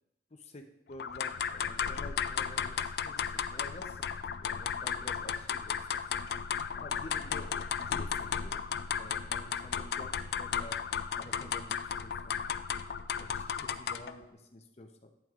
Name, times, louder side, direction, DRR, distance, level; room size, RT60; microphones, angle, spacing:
voice 1, 0.3-6.0 6.4-6.5 6.7-8.7 9.0-10.8 11.2-12.4 13.1-15.3, left 1 dB, 35° left, 5 dB, 0.7 m, -50 dB
sound 1, 1.0-14.2, left 7 dB, 60° left, 0.3 m, -35 dB
11.0 x 9.1 x 2.5 m, 0.87 s
head